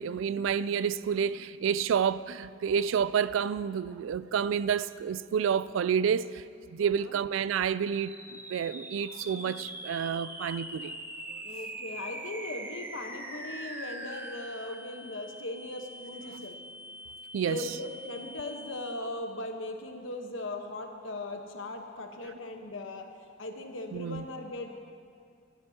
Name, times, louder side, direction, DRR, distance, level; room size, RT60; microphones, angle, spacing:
voice 1, 0.0-6.4 6.7-11.0 16.3-16.5 17.3-17.6 23.9-24.2, right 7 dB, 85° right, 0.3 m, -29 dB
voice 2, 6.8-7.2 11.4-16.6 17.4-23.1 23.4-24.8, left 2 dB, 85° left, 1.1 m, -39 dB
sound 1, 7.9-19.3, right 1 dB, 10° right, 0.7 m, -43 dB
15.5 x 13.0 x 2.8 m
head